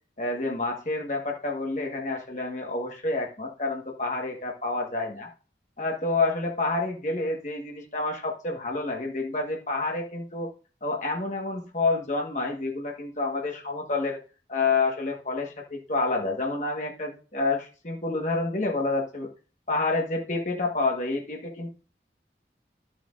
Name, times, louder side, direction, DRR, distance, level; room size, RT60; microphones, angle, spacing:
voice 1, 0.2-5.3 5.8-10.5 10.8-14.2 14.5-19.3 19.7-21.7, left 3 dB, 40° left, 0 dB, 1.5 m, -28 dB
11.5 x 7.7 x 2.5 m, 0.36 s
head